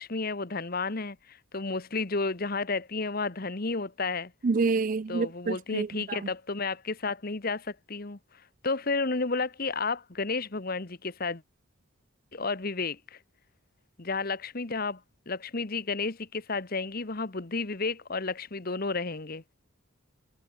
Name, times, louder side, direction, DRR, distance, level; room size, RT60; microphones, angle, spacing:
voice 1, 0.0-4.3 5.1-8.2 8.6-11.4 12.3-13.2 14.0-15.0 15.3-19.4, left 3 dB, 45° left, 1.1 m, -32 dB
voice 2, 4.4-6.2, right 4 dB, 40° right, 0.4 m, -28 dB
head